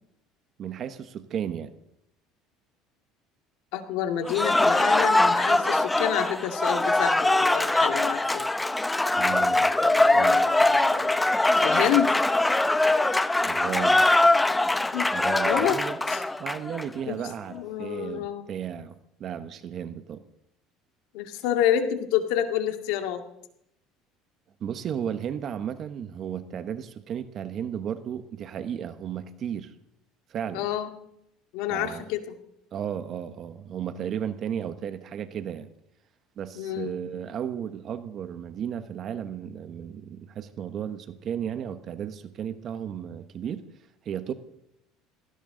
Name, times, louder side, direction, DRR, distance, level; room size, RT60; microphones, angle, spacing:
voice 1, 0.6-1.7 9.2-9.7 10.1-10.5 13.5-14.1 15.1-16.0 16.4-20.2 24.6-29.7 30.3-30.7 31.7-32.1 32.7-35.7 36.4-43.7 44.0-44.3, right 9 dB, 45° right, 11 dB, 1.1 m, -34 dB
voice 2, 3.7-8.5 9.8-11.2 11.6-12.1 14.9-15.2 15.4-15.8 16.1-16.2 17.1-17.2 17.5-18.5 21.1-23.2 30.5-30.9 31.5-32.4 36.6-36.9, left 11 dB, 75° left, 6 dB, 2.1 m, -28 dB
Cheering / Applause, 4.3-16.9, left 2 dB, 10° left, 0.8 m, -22 dB
19.5 x 17.0 x 3.9 m, 0.77 s
supercardioid pair, 105°, 0 cm